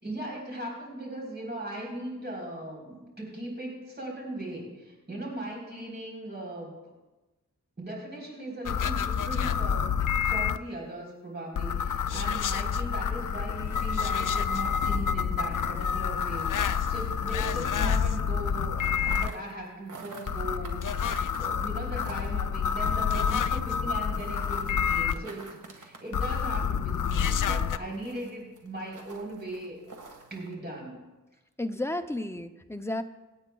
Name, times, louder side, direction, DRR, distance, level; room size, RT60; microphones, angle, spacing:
voice 1, 0.0-6.8 7.8-29.8 30.3-31.0, right 1 dB, 30° right, -4 dB, 3.8 m, -38 dB
sound 1, 8.7-10.6 11.6-19.3 20.3-25.1 26.1-27.8, left 7 dB, 75° left, 0.5 m, -28 dB
sound 2, 12.0-18.0 18.3-30.6, right 3 dB, 70° right, 1.7 m, -50 dB
voice 2, 31.6-33.0, left 1 dB, 10° left, 7 dB, 0.5 m, -32 dB
26.0 x 8.9 x 2.3 m, 1.1 s
wide cardioid pair, 100°, 32 cm